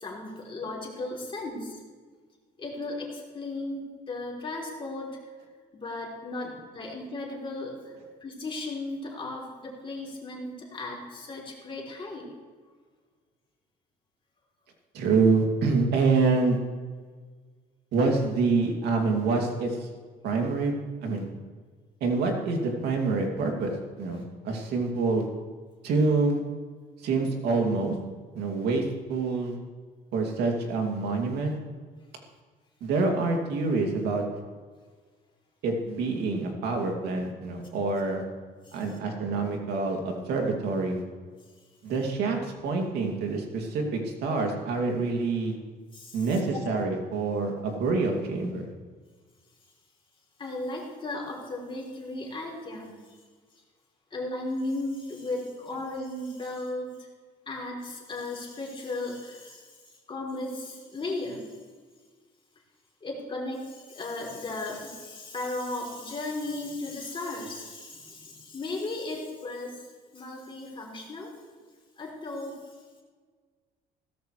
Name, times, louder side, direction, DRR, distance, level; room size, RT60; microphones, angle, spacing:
voice 1, 0.0-1.8 2.6-5.2 5.7-7.9 8.2-12.3 38.6-38.8 45.9-46.6 50.4-53.2 54.1-57.1 57.5-61.6 63.0-69.9 70.1-71.3 72.0-72.7, left 2 dB, 30° left, -1 dB, 3.4 m, -36 dB
voice 2, 14.9-16.6 17.9-19.9 20.2-20.7 21.0-21.3 22.0-25.3 25.8-26.4 27.0-27.9 28.3-28.8 29.1-29.5 30.1-31.6 32.8-34.2 35.6-38.2 38.7-41.0 41.8-45.5 46.1-48.7, right 3 dB, 75° right, 2 dB, 2.6 m, -26 dB
16.0 x 13.5 x 3.3 m, 1.5 s
cardioid pair, 110°, 17 cm